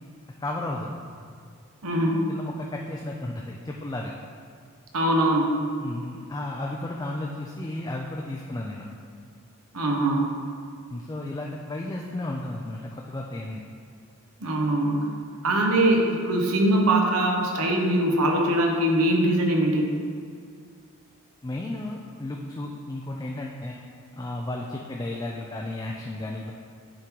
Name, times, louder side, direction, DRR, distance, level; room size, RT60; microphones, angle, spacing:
voice 1, 0.4-0.9 2.3-4.1 5.8-8.9 10.9-13.6 21.4-23.9 24.1-26.5, left 1 dB, 15° left, -1 dB, 0.4 m, -33 dB
voice 2, 1.8-2.3 4.9-5.6 9.7-10.3 14.4-15.1 15.4-19.9, right 1 dB, 90° right, 1 dB, 1.0 m, -22 dB
8.7 x 3.7 x 4.6 m, 2.2 s
head